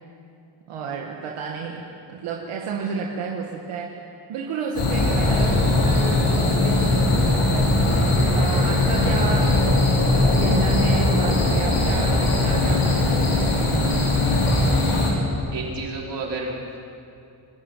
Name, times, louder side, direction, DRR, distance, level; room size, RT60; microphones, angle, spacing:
voice 1, 0.7-1.8 2.1-4.0 4.3-7.7 8.3-9.6 10.1-14.1, right 5 dB, 85° right, 0 dB, 1.9 m, -31 dB
sound 1, 4.7-15.1, left 2 dB, 80° left, 5.7 m, -20 dB
voice 2, 15.5-16.8, right 3 dB, 55° right, -2 dB, 5.3 m, -31 dB
25.5 x 12.0 x 9.3 m, 2.5 s
cardioid pair, 85°, 49 cm